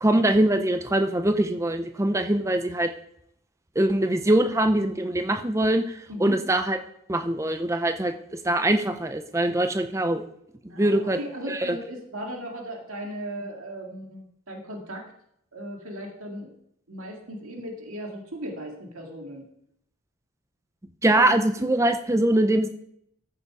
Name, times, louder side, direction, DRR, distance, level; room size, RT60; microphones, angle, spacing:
voice 1, 0.0-2.9 3.8-6.8 7.1-8.1 8.4-10.2 10.8-11.2 11.5-11.8 21.0-22.7, right 1 dB, 15° right, 7 dB, 0.6 m, -23 dB
voice 2, 10.7-15.1 15.5-16.5 16.9-19.5, equal, 75° right, 1 dB, 2.1 m, -37 dB
13.5 x 6.7 x 4.8 m, 0.74 s
head